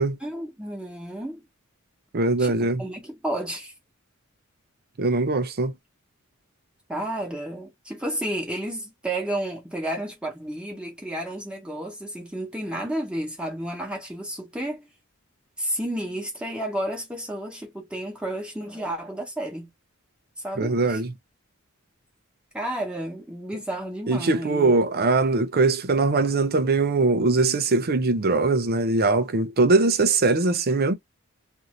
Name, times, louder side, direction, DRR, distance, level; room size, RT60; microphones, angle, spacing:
voice 1, 0.2-1.4 2.4-3.7 6.9-14.9 15.6-19.7 20.4-21.0 22.5-24.7, right 1 dB, 5° right, 1.0 m, -31 dB
voice 2, 2.1-2.8 5.0-5.7 20.6-21.1 24.1-30.9, right 3 dB, 50° right, 0.6 m, -21 dB
2.6 x 2.5 x 2.9 m
head